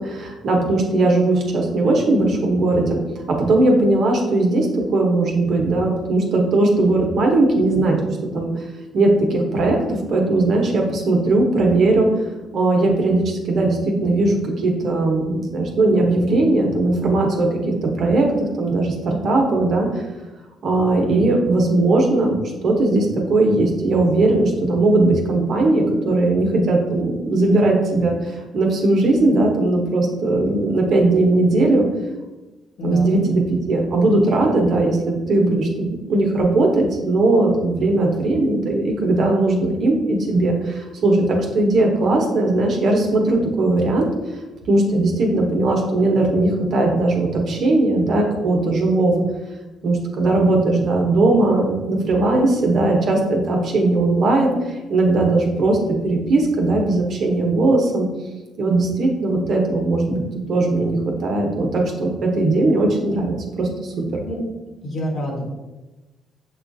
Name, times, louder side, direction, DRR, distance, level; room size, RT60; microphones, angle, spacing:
voice 1, 0.0-3.0 3.3-8.0 8.3-8.5 8.9-12.1 12.5-20.0 20.6-31.9 32.8-33.4 33.7-44.1 44.7-49.2 49.8-54.5 54.9-58.1 58.6-60.2 60.5-64.2, right 2 dB, 60° right, 1 dB, 0.9 m, -18 dB
voice 2, 32.8-33.2 64.2-64.4 64.8-65.4, left 1 dB, 65° left, -2 dB, 1.3 m, -27 dB
6.5 x 2.4 x 2.6 m, 1.1 s
supercardioid pair, 60°, 0 cm